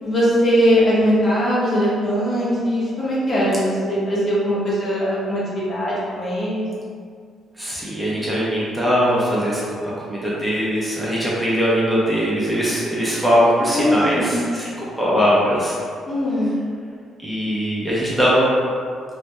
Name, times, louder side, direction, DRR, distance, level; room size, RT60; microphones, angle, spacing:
voice 1, 0.0-6.6 13.6-14.4 16.1-16.6, equal, 45° left, -8 dB, 0.8 m, -20 dB
voice 2, 7.6-9.6 10.1-15.8 16.4-16.5 17.2-18.5, equal, 5° right, -8 dB, 0.6 m, -20 dB
2.2 x 2.1 x 2.8 m, 2.1 s
cardioid pair, 90°, 0 cm